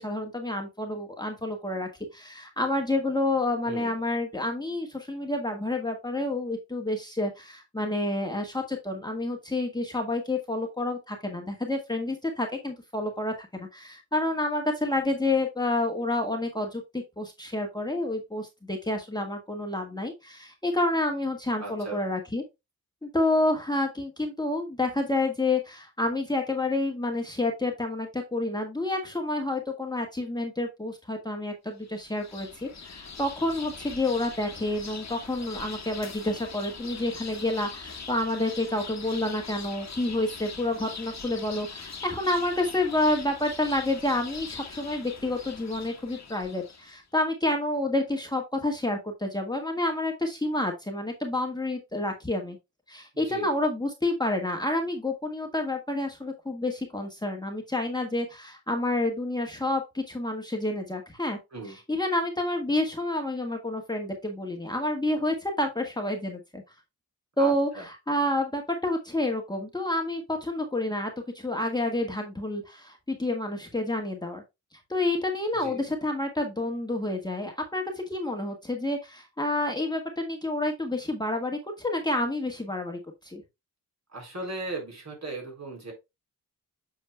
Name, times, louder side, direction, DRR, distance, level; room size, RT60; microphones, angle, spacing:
voice 1, 0.0-22.4 23.0-52.6 52.9-61.4 61.9-66.6 67.4-74.4 74.9-83.4, left 2 dB, 10° left, 2 dB, 1.5 m, -29 dB
voice 2, 21.6-22.0 53.1-53.5 61.5-61.8 67.4-67.8 75.6-75.8 84.1-85.9, right 3 dB, 50° right, 1 dB, 4.1 m, -37 dB
sound 1, 31.8-47.0, left 5 dB, 50° left, 1.5 m, -42 dB
8.2 x 6.5 x 2.2 m, 0.22 s
wide cardioid pair, 100°, 35 cm